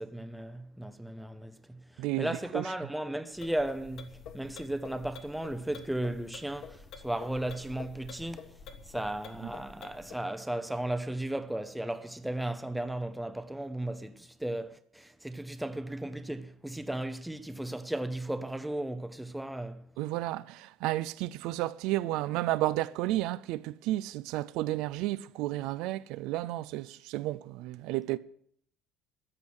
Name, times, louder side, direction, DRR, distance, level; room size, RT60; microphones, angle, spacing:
voice 1, 0.0-1.8 2.2-8.5 8.9-19.8, right 1 dB, 5° right, 0.7 m, -35 dB
sound 1, 3.3-10.2, left 6 dB, 50° left, 1.4 m, -48 dB
voice 2, 20.0-28.2, right 16 dB, 70° right, 0.4 m, -32 dB
14.0 x 9.8 x 6.3 m
cardioid pair, 155°, 0 cm